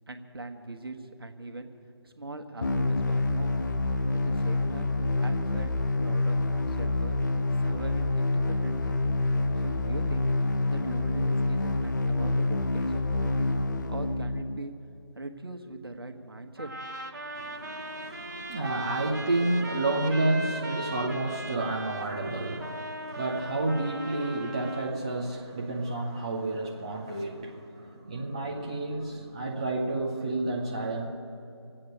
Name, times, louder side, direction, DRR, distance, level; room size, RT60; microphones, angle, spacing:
voice 1, 0.1-1.7 2.0-3.5 4.1-4.9 5.2-7.2 7.6-9.0 9.6-13.5 13.9-14.7 15.1-16.7 17.1-17.2, right 2 dB, 60° right, 6 dB, 1.2 m, -41 dB
sound 1, 2.6-14.6, left 2 dB, 40° left, 0.5 m, -27 dB
sound 2, 16.6-24.9, right 1 dB, 40° right, 1.1 m, -39 dB
voice 2, 17.4-31.1, right 2 dB, 15° right, -1 dB, 0.5 m, -30 dB
24.0 x 8.5 x 6.5 m, 2.5 s
figure-of-eight pair, 160°, 14 cm